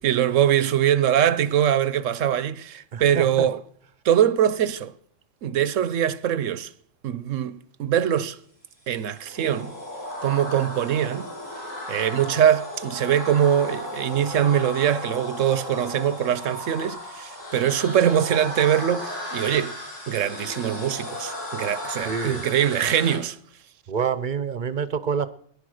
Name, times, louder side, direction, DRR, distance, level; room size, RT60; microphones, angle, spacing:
voice 1, 0.0-3.6 4.0-4.9 5.4-6.7 7.0-8.4 8.9-9.7 10.2-11.3 11.9-19.8 20.1-23.4, right 10 dB, 85° right, 1.2 m, -22 dB
voice 2, 2.9-3.5 22.0-22.4 23.9-25.3, right 6 dB, 45° right, 0.9 m, -27 dB
sound 1, 8.8-23.2, left 1 dB, 85° left, 7.0 m, -35 dB
18.5 x 11.0 x 6.5 m
omnidirectional pair, 1.3 m